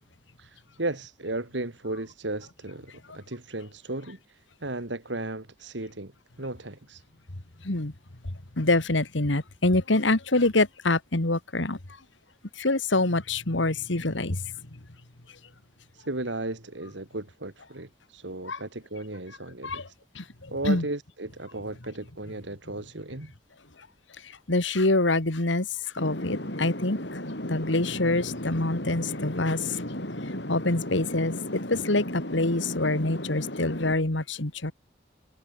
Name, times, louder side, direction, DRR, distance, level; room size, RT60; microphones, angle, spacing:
voice 1, 0.4-6.1 6.4-7.0 15.9-19.8 20.5-23.3, right 2 dB, 80° right, 2.7 m, -35 dB
voice 2, 7.6-7.9 8.5-11.8 12.6-14.8 18.4-18.6 19.6-19.9 20.1-20.9 24.2-34.7, left 2 dB, 85° left, 2.1 m, -26 dB
sound 1, 26.0-33.9, left 1 dB, 70° left, 6.0 m, -35 dB
head